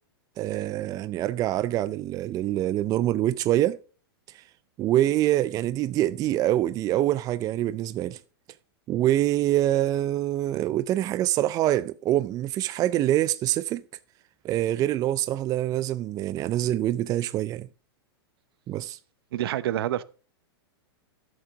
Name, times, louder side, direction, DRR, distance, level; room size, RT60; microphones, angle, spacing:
voice 1, 0.4-3.8 4.8-8.2 8.9-13.8 14.4-17.7 18.7-19.0, right 13 dB, 25° right, 0.4 m, -25 dB
voice 2, 19.3-20.0, right 12 dB, 70° right, 0.7 m, -27 dB
12.0 x 6.9 x 3.9 m
hypercardioid pair, 125°, 13 cm